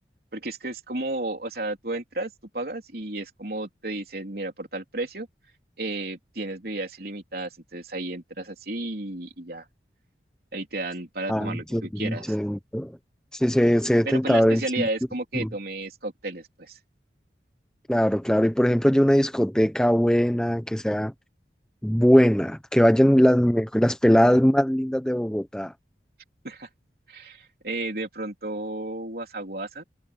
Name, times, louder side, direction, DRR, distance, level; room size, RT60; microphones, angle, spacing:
voice 1, 0.3-5.3 5.8-9.7 10.5-12.3 14.1-16.8 26.4-26.7 27.1-29.8, right 2 dB, 55° right, 3.9 m, -33 dB
voice 2, 11.3-13.0 13.3-14.9 15.3-15.5 17.9-21.1 21.8-25.7, equal, 5° left, 0.9 m, -21 dB
head